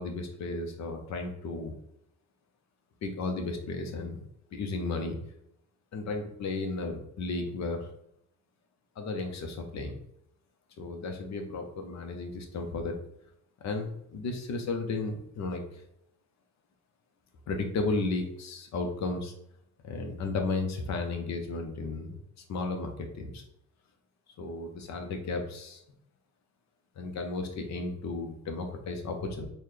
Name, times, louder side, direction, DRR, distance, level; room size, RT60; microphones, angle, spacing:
voice 1, 0.0-1.7 3.0-4.2 4.5-5.2 5.9-7.9 9.0-9.9 10.8-13.0 13.6-15.8 17.5-19.3 19.8-22.2 22.5-23.4 24.4-25.8 27.0-29.5, left 3 dB, 65° left, 4 dB, 0.8 m, -34 dB
4.0 x 2.3 x 3.2 m, 0.76 s
cardioid pair, 90°, 30 cm